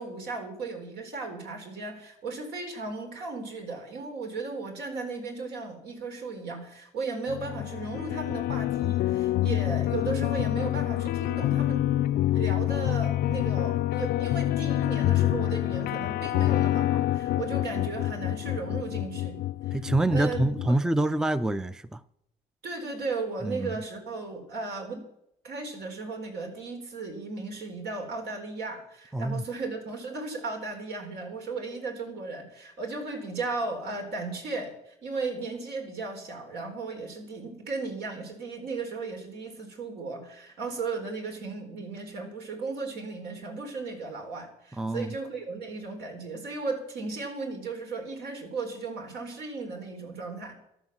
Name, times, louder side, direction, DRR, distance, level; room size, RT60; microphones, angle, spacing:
voice 1, 0.0-11.9 12.3-19.8 20.1-20.7 22.6-25.0 25.4-50.5, right 3 dB, 75° right, 4.3 m, -36 dB
sound 1, 7.3-20.7, left 14 dB, 65° left, 0.5 m, -27 dB
voice 2, 19.7-22.0 23.4-23.8 29.1-29.4 44.8-45.1, right 2 dB, 5° right, 0.5 m, -26 dB
14.0 x 11.0 x 7.3 m
cardioid pair, 110°, 17 cm